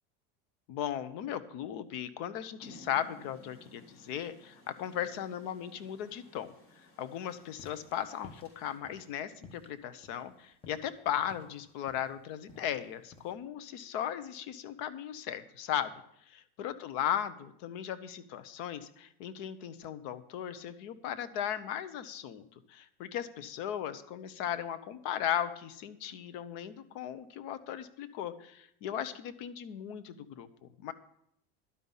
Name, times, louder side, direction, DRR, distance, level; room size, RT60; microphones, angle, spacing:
voice 1, 0.7-6.5 7.0-15.9 16.3-30.9, left 10 dB, 65° left, 13 dB, 1.0 m, -37 dB
Rain, 2.6-8.8, left 1 dB, 45° left, 3.9 m, -57 dB
sound 1, 7.5-13.3, left 3 dB, 20° left, 1.3 m, -55 dB
12.0 x 5.5 x 7.3 m, 0.73 s
supercardioid pair, 115°, 30 cm